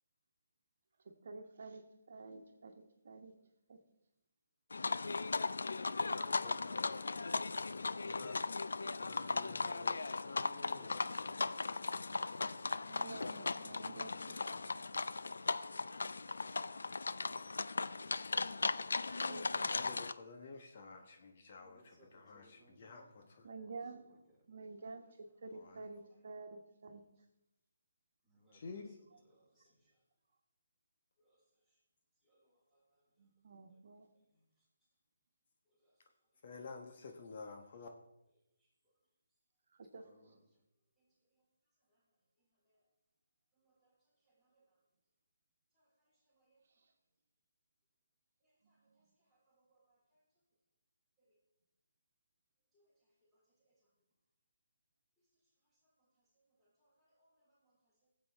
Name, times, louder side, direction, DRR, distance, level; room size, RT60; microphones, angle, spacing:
voice 1, 1.2-3.3 3.7-3.8 12.9-14.5 19.0-19.7 23.4-24.0 24.5-27.0 33.2-34.1 39.9-40.0 48.6-48.7, right 3 dB, 55° right, 5 dB, 1.2 m, -50 dB
sound 1, 4.7-20.1, left 3 dB, 70° left, 0.4 m, -37 dB
voice 2, 6.1-6.8 8.0-8.5 8.9-12.2 13.7-14.8 19.7-23.5 25.5-25.8 28.5-29.0 36.4-37.9, left 4 dB, 45° left, 4 dB, 1.1 m, -52 dB
voice 3, 21.5-23.3 23.9-24.4 24.9-26.7 27.2-27.3 28.2-30.0 31.2-31.8 32.2-33.3 33.7-33.8 34.1-34.9 35.7-37.0 38.6-39.0 39.9-40.6 41.0-41.5 41.8-42.9 43.5-44.8 45.7-46.8 48.4-50.4 51.2-51.4 52.7-54.0 55.2-58.1, right 1 dB, 5° left, -7 dB, 4.1 m, -73 dB
18.0 x 7.8 x 3.5 m, 0.87 s
figure-of-eight pair, 150°, 0 cm